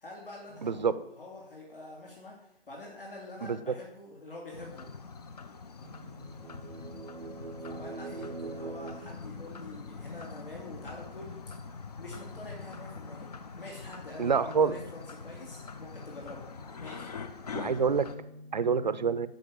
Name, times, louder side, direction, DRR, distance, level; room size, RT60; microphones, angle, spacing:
voice 1, 0.0-4.9 7.6-13.3 13.6-16.5 16.8-17.1, left 2 dB, 65° left, -2 dB, 3.1 m, -46 dB
voice 2, 0.6-1.0 3.4-3.6 5.8-7.7 14.2-14.7 17.5-19.3, right 6 dB, 50° right, 15 dB, 0.7 m, -29 dB
sound 1, 4.5-18.1, left 5 dB, 40° left, 1.0 m, -44 dB
sound 2, 6.2-10.1, right 4 dB, 85° right, 0.9 m, -43 dB
12.5 x 5.5 x 7.7 m, 0.84 s
figure-of-eight pair, 140°, 30 cm